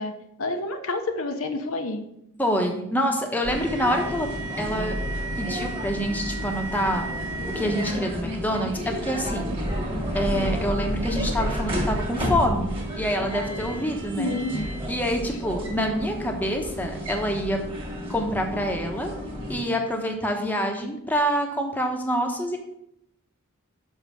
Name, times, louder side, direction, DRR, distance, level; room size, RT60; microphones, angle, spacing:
voice 1, 0.0-2.1 14.2-14.7, left 2 dB, 70° left, 6 dB, 0.9 m, -29 dB
voice 2, 2.4-4.3 4.6-4.9 5.4-7.1 7.5-9.5 10.1-14.4 14.9-17.6 18.1-19.1 19.5-22.6, equal, 10° left, 2 dB, 1.0 m, -26 dB
sound 1, 3.4-19.6, equal, 25° right, 1.8 m, -30 dB
6.5 x 5.4 x 6.3 m, 0.78 s
head